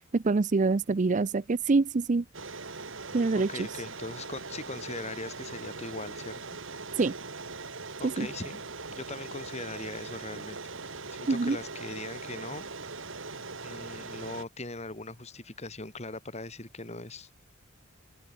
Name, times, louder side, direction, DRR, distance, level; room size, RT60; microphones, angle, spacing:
voice 1, 0.0-2.2 3.1-3.7 7.0-7.1 8.0-8.3 11.3-11.6, right 3 dB, 35° right, 0.5 m, -25 dB
sound 1, 2.3-14.5, right 4 dB, 65° right, 3.0 m, -41 dB
voice 2, 3.5-6.6 8.0-8.6 8.9-10.6 10.8-12.7 13.1-13.2 13.6-17.3, left 2 dB, 35° left, 2.9 m, -40 dB
open air
head